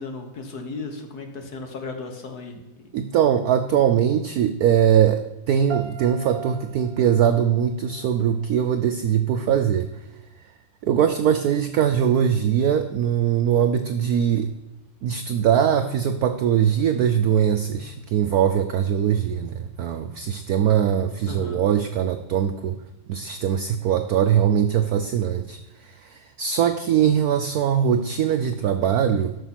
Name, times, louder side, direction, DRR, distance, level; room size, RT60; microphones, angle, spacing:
voice 1, 0.0-2.5 2.8-2.9 21.3-21.6, left 3 dB, 55° left, 4 dB, 1.7 m, -35 dB
voice 2, 2.9-9.9 10.8-14.5 15.0-22.8 23.1-29.4, right 9 dB, 75° right, 9 dB, 0.8 m, -21 dB
sound 1, 5.7-8.7, right 7 dB, 40° right, 0.8 m, -40 dB
13.0 x 6.0 x 5.8 m, 0.92 s
omnidirectional pair, 2.1 m